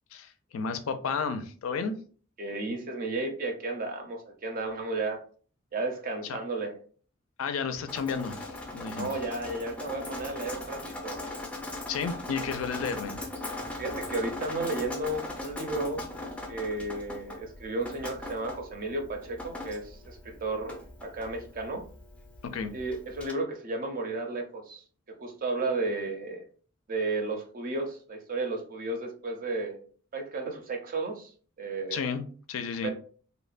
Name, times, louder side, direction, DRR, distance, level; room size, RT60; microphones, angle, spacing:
voice 1, 0.1-1.9 6.3-6.4 7.4-9.1 11.9-13.2 22.4-22.7 31.9-32.2 32.5-32.9, left 5 dB, 75° left, 0.4 m, -32 dB
voice 2, 2.4-5.2 5.7-6.8 9.0-11.3 13.8-16.0 16.5-21.8 22.7-24.8 25.2-26.4 26.9-29.8 30.1-31.3 31.6-32.1 32.8-32.9, right 2 dB, 45° right, 0.5 m, -33 dB
Drip, 7.9-23.3, left 2 dB, 5° left, 0.4 m, -40 dB
2.9 x 2.1 x 2.4 m
head